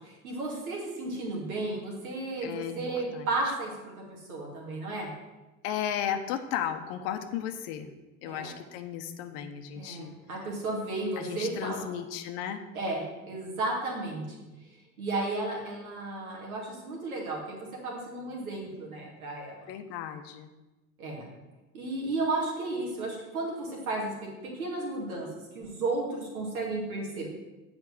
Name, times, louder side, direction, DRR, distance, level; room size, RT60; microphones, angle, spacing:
voice 1, 0.0-3.7 4.1-5.1 8.2-8.5 9.7-11.9 12.7-14.3 15.0-19.7 21.0-21.3 21.7-25.3 25.5-27.3, right 2 dB, 80° right, -3 dB, 2.3 m, -33 dB
voice 2, 2.4-3.5 5.6-7.9 8.2-10.4 11.2-12.7 19.7-20.5, left 9 dB, 65° left, 8 dB, 1.0 m, -35 dB
7.6 x 4.8 x 7.2 m, 1.1 s
hypercardioid pair, 60°, 42 cm